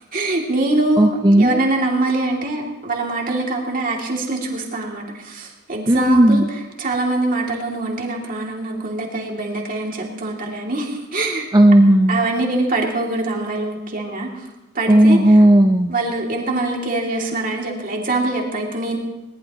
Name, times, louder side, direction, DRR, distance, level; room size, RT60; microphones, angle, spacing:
voice 1, 0.1-11.5 12.1-14.5 14.7-15.4 15.9-19.0, right 2 dB, 40° right, 0 dB, 2.8 m, -23 dB
voice 2, 1.0-1.6 5.9-6.5 11.5-12.3 14.9-15.9, right 1 dB, 20° right, 5 dB, 0.6 m, -13 dB
21.5 x 19.0 x 3.1 m, 1.0 s
head